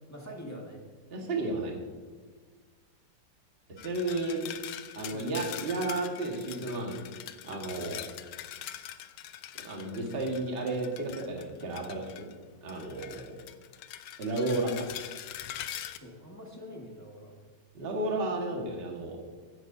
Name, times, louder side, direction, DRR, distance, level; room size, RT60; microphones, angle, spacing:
voice 1, 0.1-0.9 5.1-5.3 16.0-17.3, equal, 10° left, -2 dB, 1.4 m, -44 dB
voice 2, 1.1-1.7 3.8-4.4 4.9-7.0 7.4-8.0 9.6-12.3 12.6-13.4 14.2-14.9 17.7-19.2, right 2 dB, 30° right, 0 dB, 1.7 m, -32 dB
sound 1, 3.8-12.3 12.7-16.0, left 11 dB, 75° left, 1.4 m, -43 dB
15.5 x 11.5 x 2.7 m, 1.5 s
omnidirectional pair, 2.4 m